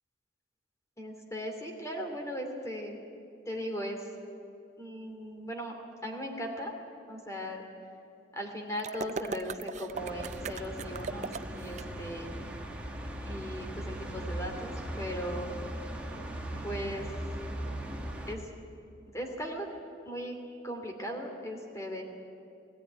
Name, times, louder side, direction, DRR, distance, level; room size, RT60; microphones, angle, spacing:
voice 1, 1.0-3.0 3.5-4.1 4.8-5.7 6.0-6.7 7.1-7.7 8.3-12.3 13.3-15.5 16.6-17.1 18.3-18.5 19.1-19.7 20.1-20.4 20.6-22.0, equal, 15° left, 3 dB, 2.6 m, -38 dB
sound 1, 8.8-11.8, right 4 dB, 40° right, 0.4 m, -38 dB
sound 2, 9.9-18.4, right 1 dB, 5° right, 1.7 m, -39 dB
18.5 x 16.0 x 9.5 m, 2.7 s
head